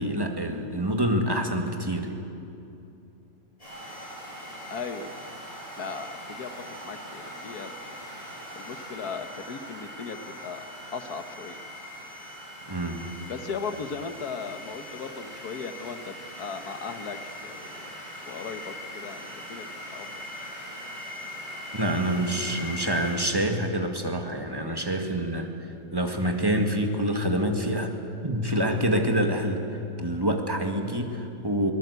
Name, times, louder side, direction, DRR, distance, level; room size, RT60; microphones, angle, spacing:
voice 1, 0.0-2.2 12.7-13.1 21.7-25.5 25.9-27.9 28.2-29.6 30.0-31.7, right 1 dB, 15° right, 4 dB, 1.8 m, -26 dB
sound 1, 3.6-23.2, equal, 20° left, 8.0 m, -41 dB
voice 2, 4.7-5.1 5.7-8.0 8.6-10.6 10.9-11.6 13.3-17.9 18.2-20.2, left 5 dB, 75° left, 9 dB, 1.7 m, -37 dB
24.0 x 18.0 x 8.2 m, 2.7 s
omnidirectional pair, 1.6 m